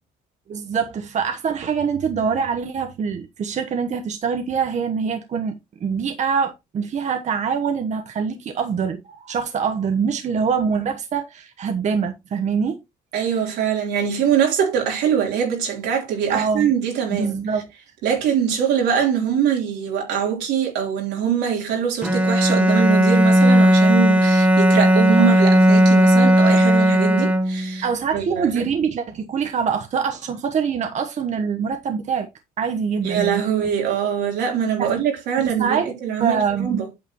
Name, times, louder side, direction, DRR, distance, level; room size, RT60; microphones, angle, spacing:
voice 1, 0.5-12.8 16.3-16.7 17.1-17.6 25.2-25.3 27.8-32.3 32.6-33.7 34.8-34.9 35.4-35.9 36.2-36.8, right 6 dB, 45° right, 1.0 m, -24 dB
voice 2, 13.1-17.4 18.0-27.8 28.1-28.7 33.0-36.9, right 8 dB, 85° right, 3.4 m, -23 dB
Bowed string instrument, 22.0-27.8, equal, 10° right, 1.1 m, -15 dB
8.6 x 6.7 x 3.0 m
cardioid pair, 110°, 17 cm